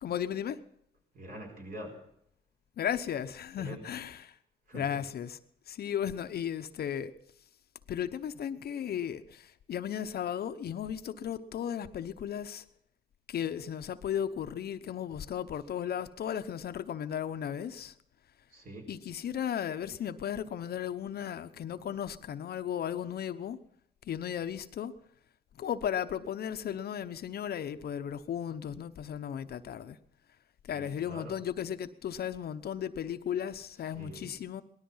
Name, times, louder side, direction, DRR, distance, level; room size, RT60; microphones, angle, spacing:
voice 1, 0.0-0.6 2.8-4.3 4.7-5.4 5.7-7.1 7.9-12.6 13.3-17.9 18.9-23.6 24.0-24.9 25.6-30.0 30.6-34.6, left 9 dB, 60° left, 0.9 m, -35 dB
voice 2, 1.1-2.0 3.6-3.9 4.7-5.1 18.5-18.9 30.7-31.4 33.9-34.4, right 1 dB, 50° right, 4.6 m, -45 dB
18.5 x 13.0 x 5.6 m
cardioid pair, 100°, 19 cm